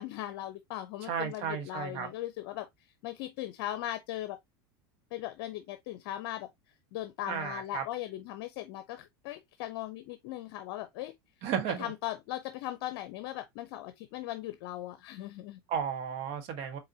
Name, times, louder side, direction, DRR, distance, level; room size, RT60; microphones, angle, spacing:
voice 1, 0.0-4.4 5.1-6.5 6.9-11.1 11.8-15.6, left 13 dB, 65° left, 0.6 m, -39 dB
voice 2, 1.0-2.1 7.3-7.8 11.4-11.9 15.7-16.8, right 7 dB, 55° right, 1.2 m, -34 dB
4.0 x 3.9 x 2.7 m
supercardioid pair, 110°, 13 cm